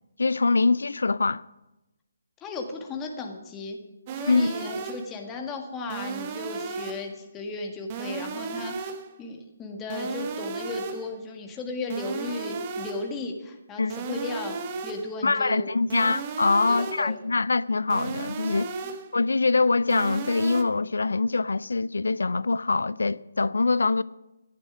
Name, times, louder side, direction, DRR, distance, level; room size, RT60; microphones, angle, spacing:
voice 1, 0.2-1.4 4.3-4.5 13.8-14.0 15.2-18.7 19.1-24.0, left 3 dB, 70° left, 0.4 m, -24 dB
voice 2, 2.4-3.8 4.2-8.9 9.2-14.6 14.8-15.8 16.7-17.2 18.8-18.9, left 3 dB, 15° left, 1.8 m, -35 dB
sound 1, 4.1-5.2 5.9-7.2 7.9-9.2 9.9-11.2 11.9-13.2 13.9-15.2 15.9-17.2 17.9-19.2 19.9-20.6, right 5 dB, 30° right, 1.2 m, -35 dB
14.5 x 11.0 x 6.1 m
figure-of-eight pair, 145°, 0 cm